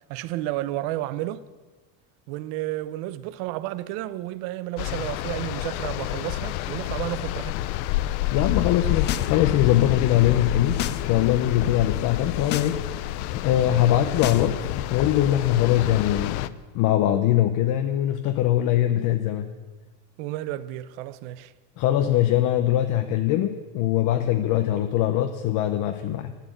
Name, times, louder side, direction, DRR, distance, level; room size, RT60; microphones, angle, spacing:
voice 1, 0.1-1.4 2.3-7.6 20.2-21.5, right 15 dB, 65° right, 0.8 m, -32 dB
sound 1, 4.8-16.5, left 14 dB, 80° left, 0.7 m, -29 dB
voice 2, 8.3-12.8 13.4-14.6 14.9-16.5 16.7-19.5 21.8-26.3, left 12 dB, 45° left, 0.8 m, -22 dB
sound 2, 8.8-9.3 9.6-11.0 11.3-11.7 12.2-12.7 13.0-15.1, left 12 dB, 25° left, 0.3 m, -34 dB
12.0 x 11.5 x 7.8 m
cardioid pair, 165°, 44 cm